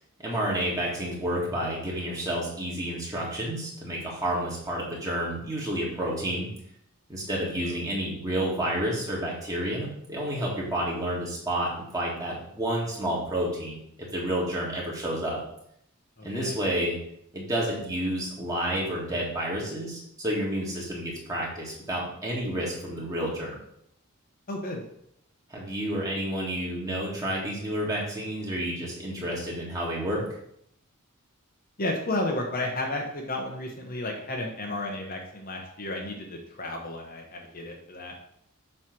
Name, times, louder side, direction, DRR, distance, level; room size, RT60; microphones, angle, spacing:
voice 1, 0.2-6.5 7.1-13.8 14.1-15.4 16.2-17.0 17.3-23.5 25.5-30.3, right 1 dB, 15° right, -4 dB, 2.0 m, -30 dB
voice 2, 16.2-16.5 24.5-24.8 31.8-38.1, left 2 dB, 40° left, 2 dB, 0.9 m, -32 dB
7.5 x 3.3 x 6.0 m, 0.72 s
head